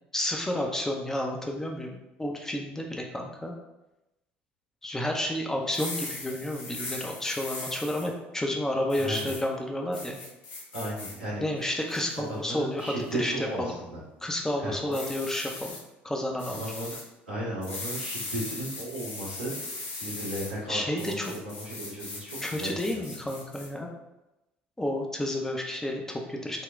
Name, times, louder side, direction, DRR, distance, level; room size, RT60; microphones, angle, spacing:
voice 1, 0.1-3.6 4.8-10.2 11.4-13.8 14.2-15.8 16.0-16.6 20.7-21.3 22.4-23.9 24.8-26.6, left 1 dB, 10° left, 1 dB, 0.6 m, -31 dB
sound 1, 5.6-8.1 8.9-9.4 9.9-11.1 11.6-12.2 12.8-13.1 14.9-15.8 16.4-17.0 17.6-20.5 21.0-23.7, left 2 dB, 65° left, 0.9 m, -39 dB
voice 2, 9.0-9.3 10.7-11.5 12.3-14.0 14.6-14.9 16.5-16.9 17.3-19.5 20.0-23.0, right 1 dB, 85° right, -9 dB, 1.4 m, -35 dB
3.9 x 2.2 x 3.6 m, 0.94 s
figure-of-eight pair, 60°, 6 cm